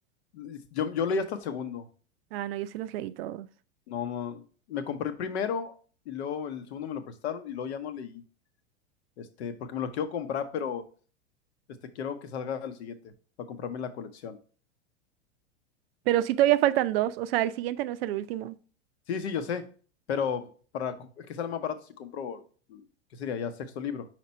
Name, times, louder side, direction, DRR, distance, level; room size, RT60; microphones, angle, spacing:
voice 1, 0.3-1.8 3.9-5.7 6.1-8.2 9.2-10.8 11.9-13.1 13.4-14.4 19.1-19.7 20.1-22.4 22.7-22.8 23.1-24.1, left 7 dB, 65° left, 0.9 m, -33 dB
voice 2, 2.3-3.5 16.1-18.6, right 13 dB, 55° right, 0.5 m, -27 dB
5.0 x 4.5 x 4.3 m
hypercardioid pair, 95°, 36 cm